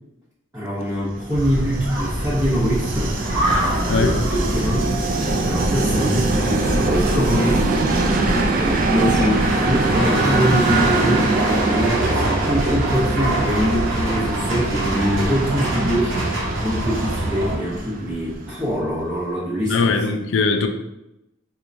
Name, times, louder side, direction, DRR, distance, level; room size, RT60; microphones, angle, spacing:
voice 1, 0.5-3.2 3.7-4.9 5.4-7.7 8.6-11.3 11.6-16.3 16.6-19.9, equal, 15° right, 1.0 m, -23 dB
Train, 1.1-18.9, right 2 dB, 45° right, 0.4 m, -23 dB
sound 1, 1.3-17.6, right 1 dB, 70° right, 0.8 m, -25 dB
voice 2, 19.7-20.7, left 4 dB, 70° left, 0.4 m, -20 dB
4.4 x 2.3 x 2.6 m
head